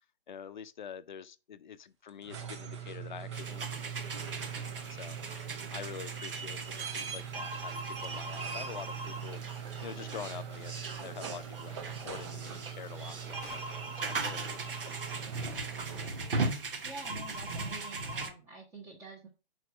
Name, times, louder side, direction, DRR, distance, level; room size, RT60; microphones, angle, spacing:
voice 1, 0.3-9.4 9.8-15.4, left 8 dB, 50° left, 0.6 m, -46 dB
sound 1, 2.1-16.5 18.2-18.3, right 8 dB, 30° right, 0.8 m, -42 dB
sound 2, 3.3-18.3, right 3 dB, 60° right, 1.2 m, -39 dB
sound 3, 7.7-10.0 13.2-13.7, left 5 dB, 10° left, 0.6 m, -57 dB
voice 2, 16.8-19.3, right 2 dB, 10° right, 1.1 m, -47 dB
5.9 x 4.8 x 5.8 m
figure-of-eight pair, 130°, 31 cm